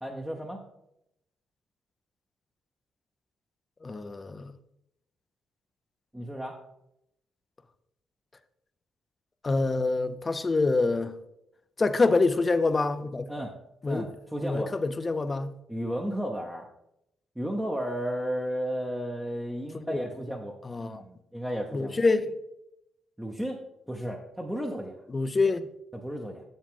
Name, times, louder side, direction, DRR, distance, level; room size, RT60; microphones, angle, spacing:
voice 1, 0.0-0.6 6.1-6.6 13.3-13.5 13.9-14.7 15.7-16.7 17.4-22.0 23.2-23.6 23.9-24.9 25.9-26.4, equal, 5° right, 0.9 m, -33 dB
voice 2, 3.8-4.5 9.4-11.2 11.8-13.3 13.8-14.1 14.4-15.5 19.9-20.0 20.7-21.0 21.7-22.3 25.1-25.6, left 3 dB, 25° left, 0.5 m, -26 dB
7.4 x 7.1 x 3.7 m
cardioid pair, 90°, 0 cm